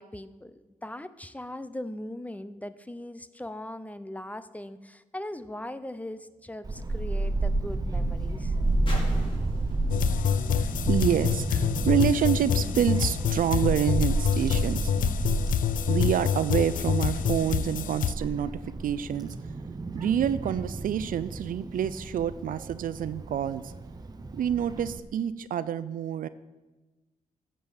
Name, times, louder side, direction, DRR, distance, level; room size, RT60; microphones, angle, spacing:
voice 1, 0.0-8.5, left 1 dB, 10° left, 14 dB, 0.7 m, -39 dB
sound 1, 5.3-11.8 12.7-12.8, left 1 dB, 35° left, 4.6 m, -48 dB
Child speech kid speaking / Wind, 6.6-25.0, right 2 dB, 25° right, 0.9 m, -31 dB
sound 2, 9.9-18.1, left 9 dB, 70° left, 0.5 m, -27 dB
voice 2, 10.5-14.9 15.9-19.3 19.9-23.7 24.3-26.3, right 9 dB, 75° right, 15 dB, 0.6 m, -27 dB
14.5 x 7.7 x 7.2 m, 1.1 s
cardioid pair, 100°, 14 cm